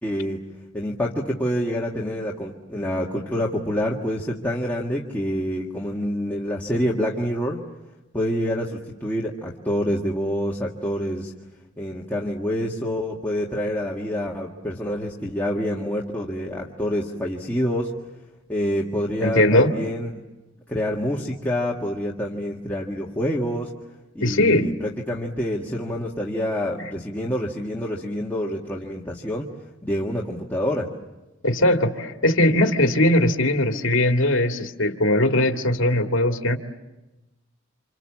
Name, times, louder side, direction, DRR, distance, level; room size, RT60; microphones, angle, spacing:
voice 1, 0.0-0.4 0.7-7.6 8.1-11.3 11.8-17.9 18.5-20.2 20.7-23.7 24.1-29.5 29.8-30.9, equal, 10° left, -3 dB, 1.7 m, -27 dB
voice 2, 19.2-19.7 24.2-24.7 31.4-36.6, left 1 dB, 70° left, 4 dB, 2.1 m, -20 dB
29.0 x 27.5 x 7.4 m, 1.0 s
head